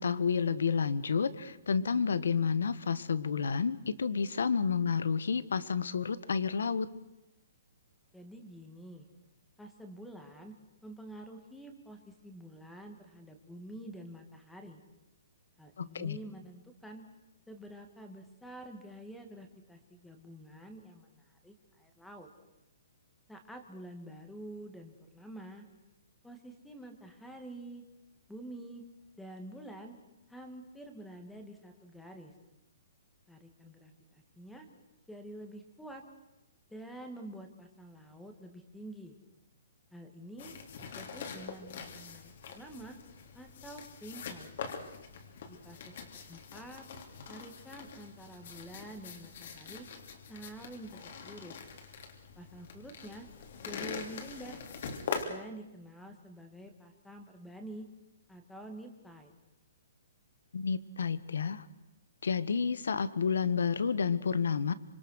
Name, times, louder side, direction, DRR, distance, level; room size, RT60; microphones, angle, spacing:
voice 1, 0.0-6.9 15.8-16.2 60.5-61.6 62.2-64.7, left 6 dB, 90° left, 15 dB, 1.6 m, -30 dB
voice 2, 8.1-9.1 9.6-10.5 10.8-14.8 15.6-17.0 17.5-22.3 23.3-25.7 26.2-27.8 28.3-28.8 29.2-29.9 30.3-32.3 33.3-34.7 35.1-36.0 36.7-39.2 39.9-40.5 40.9-43.0 43.3-44.5 45.5-46.9 47.3-49.9 50.3-51.6 52.4-53.3 53.7-54.6 55.2-57.9 58.3-59.3, right 1 dB, ahead, 5 dB, 1.9 m, -48 dB
sound 1, 40.4-55.2, left 6 dB, 45° left, 3.3 m, -44 dB
26.0 x 25.5 x 6.5 m, 0.93 s
hypercardioid pair, 170°, 0 cm